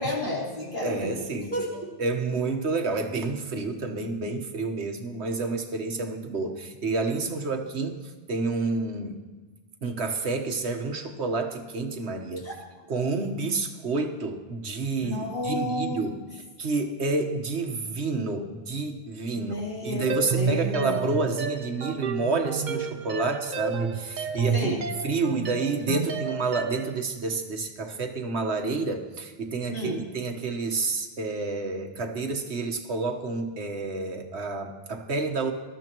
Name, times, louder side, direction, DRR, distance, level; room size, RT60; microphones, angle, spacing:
voice 1, 0.0-1.9 12.4-12.5 15.0-16.0 19.3-21.0 24.5-24.8 29.7-30.0, equal, 50° left, -5 dB, 3.6 m, -31 dB
voice 2, 0.8-1.5 2.0-9.2 9.8-12.5 12.9-16.2 16.6-24.8 25.0-35.5, right 3 dB, 80° right, 5 dB, 1.5 m, -29 dB
sound 1, 20.1-27.0, right 5 dB, 50° right, 0.8 m, -31 dB
20.0 x 13.0 x 3.0 m, 1.4 s
omnidirectional pair, 1.1 m